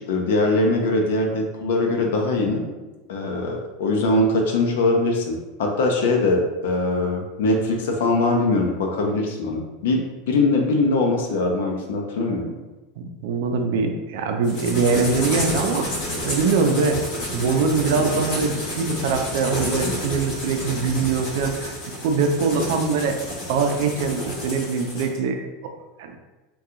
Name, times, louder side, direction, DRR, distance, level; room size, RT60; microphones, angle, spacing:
voice 1, 0.0-2.6 3.1-12.5, left 2 dB, 85° left, 1 dB, 0.6 m, -22 dB
voice 2, 13.0-15.9 16.2-21.7 22.0-23.2 23.5-25.4 26.0-26.2, right 4 dB, 65° right, 4 dB, 0.4 m, -23 dB
sound 1, 14.4-25.2, left 1 dB, 60° left, 1.2 m, -29 dB
2.8 x 2.3 x 3.7 m, 1.1 s
supercardioid pair, 160°, 0 cm